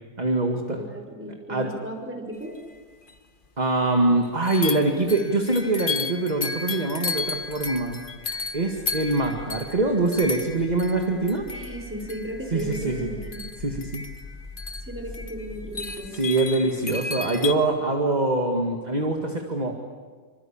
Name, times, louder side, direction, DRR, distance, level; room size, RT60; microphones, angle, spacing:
voice 1, 0.2-0.8 1.5-1.7 3.6-8.0 8.5-11.5 12.5-13.1 13.6-14.0 16.1-19.7, right 2 dB, 30° right, 3 dB, 2.1 m, -24 dB
voice 2, 0.7-2.5 11.5-13.4 14.8-16.1, equal, 10° right, 1 dB, 5.3 m, -35 dB
sound 1, 2.7-2.8 3.1-3.2 4.4-17.5, left 4 dB, 35° left, 1.4 m, -34 dB
sound 2, 8.2-16.1, left 2 dB, 60° left, 3.0 m, -44 dB
26.5 x 25.5 x 8.8 m, 1.5 s
omnidirectional pair, 1.6 m